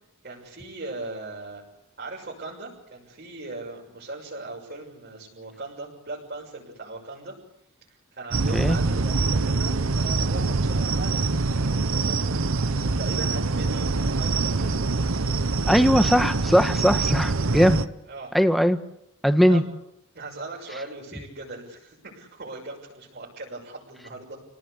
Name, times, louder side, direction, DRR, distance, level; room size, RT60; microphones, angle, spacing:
voice 1, 0.2-1.6 2.0-7.3 7.9-14.8 18.1-18.3 19.5-19.6 20.1-24.4, right 2 dB, 50° right, -4 dB, 6.8 m, -39 dB
sound 1, 8.3-17.8, right 3 dB, 75° right, 1.0 m, -24 dB
voice 2, 15.7-17.8 18.3-18.8 19.2-19.6, equal, ahead, 8 dB, 1.5 m, -19 dB
29.0 x 18.5 x 8.3 m, 0.82 s
head